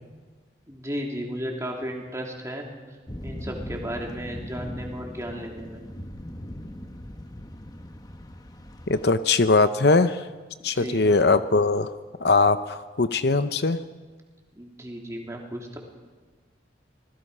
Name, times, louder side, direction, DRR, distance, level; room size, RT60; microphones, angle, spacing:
voice 1, 0.7-2.7 3.2-5.8 10.7-11.1 14.5-15.8, equal, 15° right, 0 dB, 3.2 m, -34 dB
sound 1, 3.1-9.1, equal, 20° left, 0.9 m, -39 dB
voice 2, 8.9-10.2 10.6-11.9 12.2-13.8, left 3 dB, 55° left, 11 dB, 0.7 m, -21 dB
26.5 x 20.0 x 5.6 m, 1.4 s
head